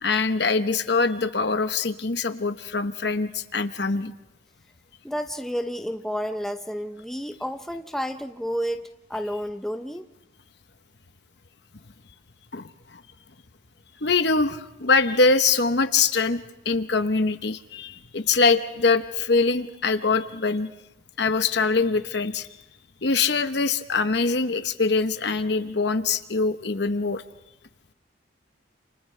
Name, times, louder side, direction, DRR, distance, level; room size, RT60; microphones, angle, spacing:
voice 1, 0.0-4.1 12.5-13.0 14.0-16.4 16.6-20.7 21.2-22.5 23.0-27.2, left 4 dB, 60° left, 9 dB, 1.0 m, -23 dB
voice 2, 5.0-10.1, equal, ahead, 6 dB, 0.7 m, -31 dB
29.5 x 28.5 x 3.3 m, 0.96 s
head